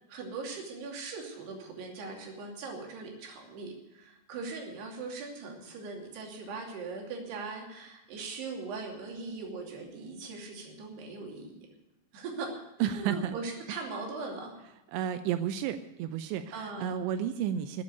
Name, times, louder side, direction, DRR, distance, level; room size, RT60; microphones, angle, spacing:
voice 1, 0.1-11.5 12.1-12.5 12.9-14.5 16.5-16.9, right 4 dB, 65° right, 0 dB, 4.6 m, -40 dB
voice 2, 12.8-13.4 14.9-17.8, right 9 dB, 85° right, 10 dB, 3.0 m, -32 dB
14.0 x 8.6 x 9.3 m, 0.99 s
omnidirectional pair, 5.2 m